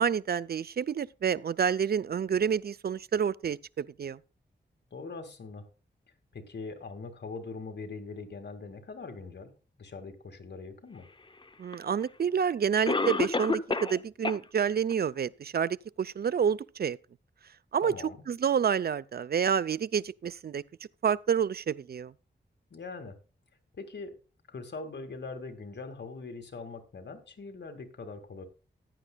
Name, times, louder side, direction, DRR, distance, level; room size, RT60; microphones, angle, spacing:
voice 1, 0.0-4.2 11.6-17.0 17.7-17.9 18.3-20.6 21.0-22.1, right 7 dB, 60° right, 0.4 m, -28 dB
voice 2, 4.9-5.7 6.3-9.5 9.8-11.0 17.8-18.2 22.7-23.2 23.8-24.1 24.5-28.5, left 4 dB, 70° left, 2.1 m, -42 dB
Cough, 11.7-11.8 12.9-14.0 14.2-14.4 14.9-15.0 15.6-15.7, left 3 dB, 25° left, 0.7 m, -28 dB
15.0 x 10.0 x 2.3 m
wide cardioid pair, 105°, 19 cm